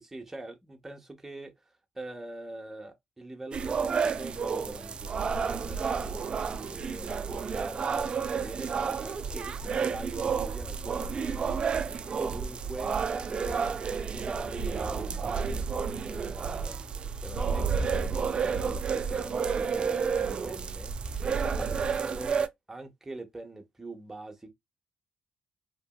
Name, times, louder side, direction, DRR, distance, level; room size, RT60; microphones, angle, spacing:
voice 1, 0.0-1.5 1.9-8.0 8.3-11.9 12.1-13.6 14.1-16.8 17.2-20.9 21.6-22.3 22.7-24.5, right 2 dB, 10° right, 0.8 m, -43 dB
sound 1, 3.5-22.5, right 5 dB, 40° right, 0.3 m, -31 dB
2.9 x 2.6 x 2.3 m
cardioid pair, 85°, 3 cm